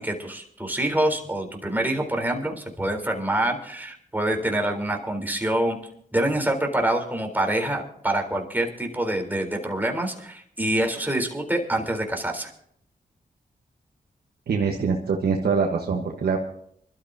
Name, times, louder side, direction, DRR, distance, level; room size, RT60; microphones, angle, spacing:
voice 1, 0.0-5.8 6.1-12.5, right 1 dB, 10° right, 2 dB, 3.7 m, -26 dB
voice 2, 14.5-16.4, right 5 dB, 80° right, 1 dB, 1.3 m, -24 dB
25.0 x 13.0 x 2.8 m, 0.67 s
cardioid pair, 55°, 16 cm